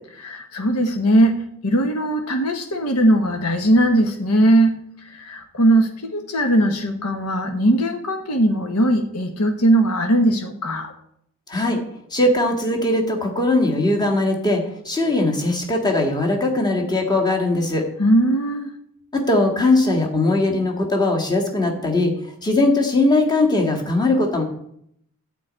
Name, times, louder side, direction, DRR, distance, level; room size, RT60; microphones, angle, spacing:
voice 1, 0.2-10.9 18.0-18.7, right 1 dB, 85° left, 5 dB, 1.3 m, -19 dB
voice 2, 11.5-11.8 12.1-17.9 19.1-22.1 22.4-24.4, left 2 dB, 20° left, 1 dB, 1.9 m, -20 dB
11.5 x 5.2 x 8.8 m, 0.72 s
head